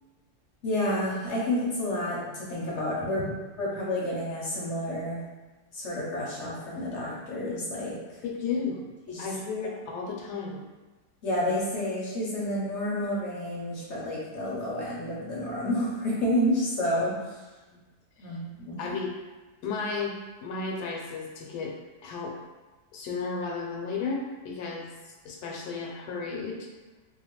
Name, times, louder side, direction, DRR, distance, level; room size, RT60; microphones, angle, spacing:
voice 1, 0.6-3.2 3.6-5.2 5.7-8.2 9.1-9.3 11.2-17.4 18.2-18.8, left 1 dB, 60° left, -5 dB, 0.8 m, -30 dB
voice 2, 8.2-8.8 9.2-10.6 17.7-17.8 18.2-18.3 18.8-19.1 19.6-20.1 20.4-21.8 22.0-22.4 22.9-24.9 25.2-26.7, left 4 dB, 80° left, 0 dB, 1.1 m, -33 dB
2.8 x 2.2 x 2.9 m, 1.2 s
omnidirectional pair, 1.7 m